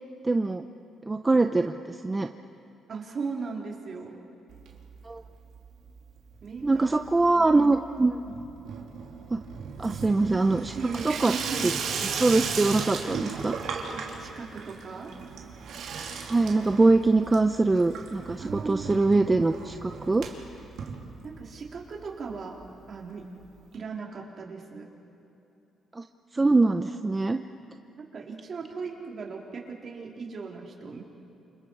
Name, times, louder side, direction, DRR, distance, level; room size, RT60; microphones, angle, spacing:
voice 1, 0.2-0.6 1.1-2.3 5.0-5.2 6.6-8.2 9.3-9.4 9.8-10.7 11.0-11.3 11.6-11.7 12.2-13.5 16.3-20.2 25.9-26.0 26.3-27.4, right 3 dB, 20° right, 7 dB, 0.7 m, -23 dB
voice 2, 2.9-4.2 6.4-6.9 7.3-7.5 8.3-8.4 9.8-10.0 10.8-11.7 13.9-15.1 18.4-18.9 21.2-23.3 23.7-24.9 28.0-31.0, right 4 dB, 50° right, -1 dB, 3.9 m, -37 dB
Water tap faucet / Sink (filling or washing), 4.5-5.3 5.5-6.1 6.4-21.7 22.0-22.1 22.3-22.4 22.6-22.7 23.7-23.8, right 5 dB, 75° right, 2.9 m, -36 dB
29.5 x 26.5 x 4.8 m, 2.8 s
cardioid pair, 90°, 0 cm